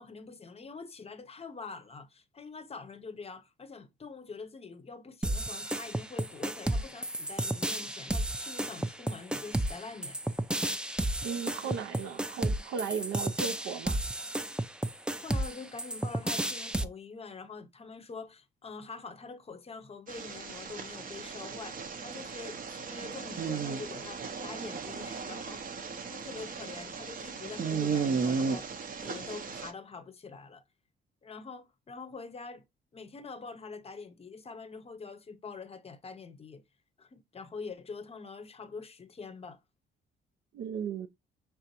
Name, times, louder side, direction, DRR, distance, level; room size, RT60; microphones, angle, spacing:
voice 1, 0.0-10.2 15.2-25.7 26.1-28.7 29.0-30.6 31.2-32.7 32.9-36.6 37.0-39.6, left 4 dB, 30° left, 0.6 m, -45 dB
sound 1, 5.2-16.8, right 1 dB, 5° right, 0.3 m, -32 dB
voice 2, 11.2-14.0 40.5-41.1, right 7 dB, 80° right, 0.6 m, -36 dB
sound 2, 20.1-29.7, right 5 dB, 45° right, 0.6 m, -35 dB
5.0 x 3.5 x 2.8 m
cardioid pair, 90°, 20 cm